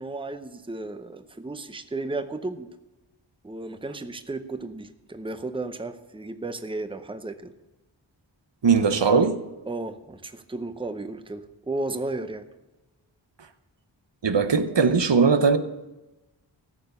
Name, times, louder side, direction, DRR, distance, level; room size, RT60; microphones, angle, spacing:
voice 1, 0.0-2.7 3.4-7.5 9.7-12.4, right 2 dB, 10° right, 0.7 m, -34 dB
voice 2, 8.6-9.4 14.2-15.6, right 5 dB, 65° right, 0.8 m, -19 dB
14.5 x 6.7 x 6.8 m
wide cardioid pair, 40°, 46 cm